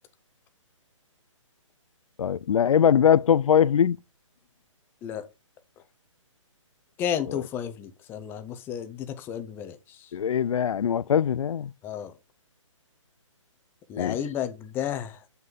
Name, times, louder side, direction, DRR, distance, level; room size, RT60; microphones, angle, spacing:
voice 1, 2.2-4.0 10.1-11.7 14.0-14.2, left 8 dB, 80° left, 0.4 m, -21 dB
voice 2, 7.0-10.1 11.8-12.1 13.9-15.2, left 9 dB, 15° left, 0.7 m, -32 dB
7.3 x 5.8 x 3.8 m
hypercardioid pair, 150°, 17 cm